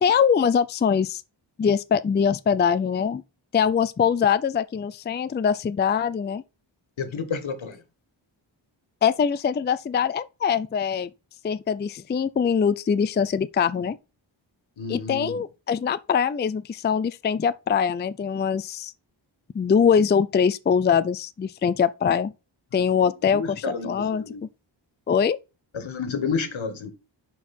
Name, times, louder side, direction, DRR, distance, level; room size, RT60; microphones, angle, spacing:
voice 1, 0.0-1.2 1.6-3.2 3.5-6.4 9.0-11.1 11.4-14.0 14.9-18.9 19.5-22.3 22.7-24.2 25.1-25.4, left 7 dB, 25° left, 0.3 m, -23 dB
voice 2, 7.0-7.8 14.8-15.4 22.7-22.8 23.3-24.4 25.7-26.9, left 5 dB, 80° left, 1.6 m, -30 dB
10.5 x 4.6 x 4.3 m
wide cardioid pair, 145°, 46 cm